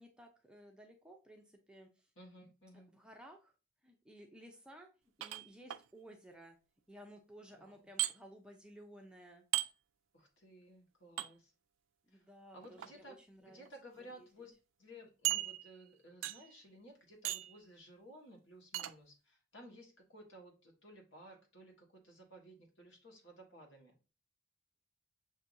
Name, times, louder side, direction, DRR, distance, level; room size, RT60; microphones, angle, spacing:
voice 1, 0.0-2.1 2.9-3.5 3.8-4.9 5.2-6.6 6.9-9.5 12.1-13.7 14.0-14.3, right 1 dB, 5° right, 2 dB, 0.5 m, -56 dB
voice 2, 2.2-2.9 7.5-7.8 10.1-11.5 12.1-12.3 12.5-14.5 14.8-23.9, equal, 65° left, 1 dB, 1.5 m, -56 dB
sound 1, 5.2-5.8 8.0-8.1 9.5-9.7 11.2-11.3 12.6-12.9 13.6-13.7 14.1-14.2 15.2-15.9 16.2-16.6 17.2-17.6 18.7-18.9, right 14 dB, 80° right, 0.3 m, -36 dB
6.7 x 2.7 x 2.6 m, 0.31 s
head